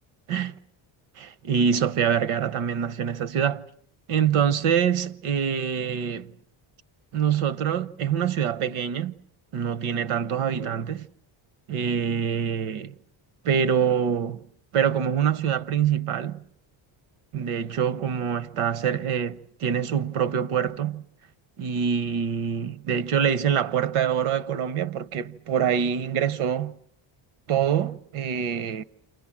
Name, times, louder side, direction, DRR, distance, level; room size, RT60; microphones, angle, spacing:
voice 1, 1.2-3.6 4.1-6.3 7.1-9.1 9.5-11.1 11.7-12.9 13.4-14.4 14.7-16.4 17.3-21.0 21.6-26.7 27.5-28.8, right 8 dB, 75° right, 1.1 m, -25 dB
29.0 x 27.0 x 7.4 m
cardioid pair, 160°, 50 cm